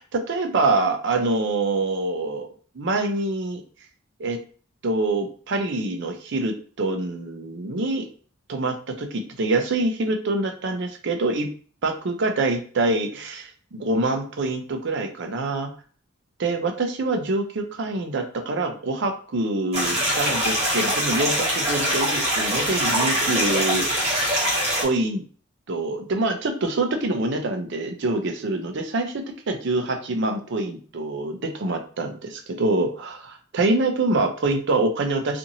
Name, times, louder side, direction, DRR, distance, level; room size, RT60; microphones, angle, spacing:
voice 1, 0.0-2.5 2.8-3.6 4.2-4.4 4.8-8.0 8.5-11.5 11.8-15.7 16.4-24.4 24.8-25.2 25.7-35.4, right 2 dB, 55° right, 5 dB, 0.5 m, -25 dB
sound 1, 19.7-24.8, equal, 30° right, 1.0 m, -23 dB
2.8 x 2.5 x 2.7 m, 0.43 s
head